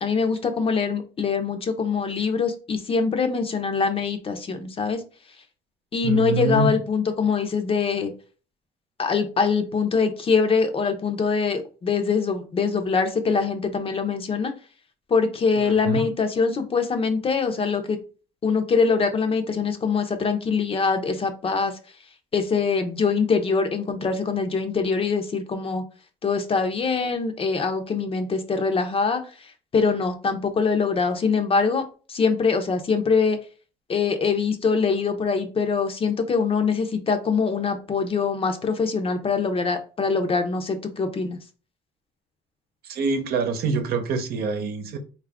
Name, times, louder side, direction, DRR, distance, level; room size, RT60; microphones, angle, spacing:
voice 1, 0.0-5.0 5.9-8.1 9.0-14.5 15.1-18.0 18.4-21.8 22.3-25.8 26.2-33.4 33.9-41.4, left 5 dB, 35° left, 0.7 m, -23 dB
voice 2, 6.0-6.7 15.5-16.0 42.8-45.0, right 4 dB, 65° right, 0.8 m, -25 dB
4.0 x 2.5 x 3.5 m
cardioid pair, 110°, 17 cm